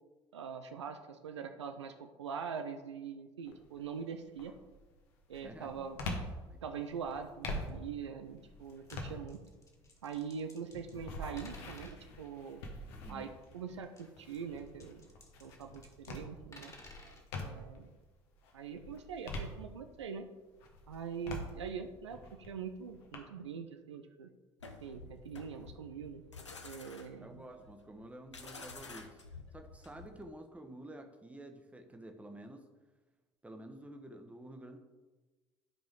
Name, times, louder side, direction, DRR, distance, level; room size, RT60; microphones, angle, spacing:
voice 1, 0.3-4.6 5.3-6.0 6.6-9.4 10.0-12.6 13.1-15.1 15.4-16.7 17.4-17.9 18.5-20.3 20.9-24.3 24.8-26.2 26.6-27.4, right 6 dB, 75° right, 7 dB, 0.5 m, -43 dB
sound 1, 3.4-3.8 4.3-17.9 18.3-20.1 20.6-23.2, left 1 dB, 65° left, 1.4 m, -45 dB
voice 2, 5.4-6.6 12.9-13.3 27.2-32.7 33.4-34.8, right 1 dB, 10° right, 4 dB, 1.2 m, -50 dB
sound 2, 8.6-9.0 9.3-11.0 11.4-12.0 13.9-16.1 16.4-17.2 18.9-19.0 19.5-19.6, left 2 dB, 20° left, 2.0 m, -56 dB
sound 3, 24.6-30.3, left 4 dB, 85° left, 0.7 m, -50 dB
12.0 x 5.1 x 3.7 m, 1.2 s
figure-of-eight pair, 60°, 15 cm